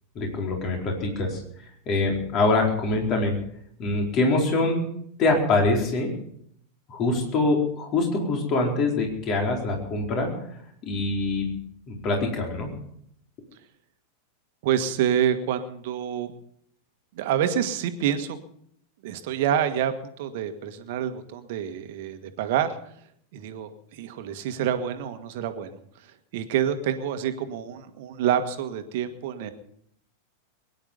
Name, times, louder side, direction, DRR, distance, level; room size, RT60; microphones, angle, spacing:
voice 1, 0.1-1.4 1.9-3.3 3.8-4.8 5.2-6.1 6.9-10.3 10.8-11.5 11.9-12.7, left 2 dB, 35° left, 0 dB, 4.4 m, -24 dB
voice 2, 14.6-16.3 17.1-18.4 19.0-22.7 23.3-25.8 26.0-29.5, right 9 dB, 50° right, 9 dB, 1.6 m, -27 dB
22.5 x 10.5 x 5.4 m, 0.70 s
figure-of-eight pair, 90°, 0 cm